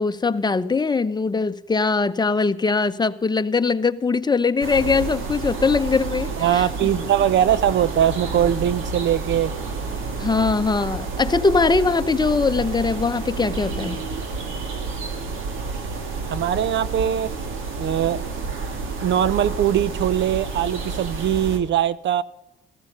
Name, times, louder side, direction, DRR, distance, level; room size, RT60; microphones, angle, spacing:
voice 1, 0.0-6.9 10.2-14.0, left 4 dB, 20° left, 0.9 m, -21 dB
sound 1, 4.6-21.6, right 4 dB, 85° right, 2.6 m, -30 dB
voice 2, 6.4-9.5 16.3-17.3 17.8-18.2 19.0-22.2, right 10 dB, 65° right, 0.7 m, -21 dB
15.0 x 15.0 x 5.5 m
cardioid pair, 90°, 20 cm